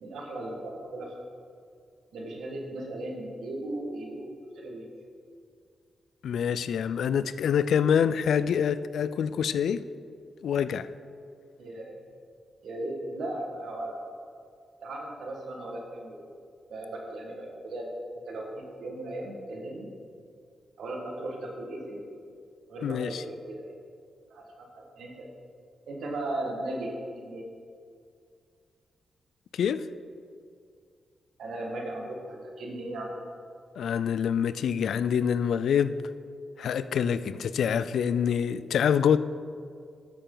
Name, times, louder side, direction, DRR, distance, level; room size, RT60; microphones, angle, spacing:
voice 1, 0.0-1.1 2.1-4.9 11.6-12.0 12.6-14.0 14.8-16.2 16.7-17.9 18.3-19.9 20.8-22.0 22.7-23.7 24.3-25.3 25.9-27.4 31.4-33.2, right 1 dB, 80° right, 1.6 m, -37 dB
voice 2, 6.2-9.8 10.4-10.9 22.8-23.2 29.5-29.9 33.8-36.0 36.6-39.2, left 8 dB, 80° left, 0.3 m, -26 dB
12.5 x 6.9 x 3.9 m
cardioid pair, 65°, 0 cm